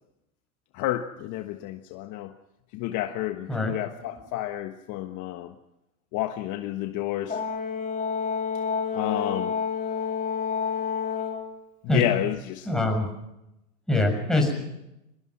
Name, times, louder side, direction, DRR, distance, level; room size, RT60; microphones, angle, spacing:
voice 1, 0.7-2.3 2.7-5.5 6.1-7.4 8.9-9.5 11.9-12.7, left 13 dB, 45° left, 7 dB, 1.4 m, -30 dB
Brass instrument, 7.3-11.5, left 6 dB, 20° left, 3.4 m, -29 dB
voice 2, 12.6-13.1 13.9-14.6, left 2 dB, ahead, 1 dB, 6.7 m, -23 dB
25.0 x 19.5 x 6.0 m, 0.88 s
supercardioid pair, 125°, 43 cm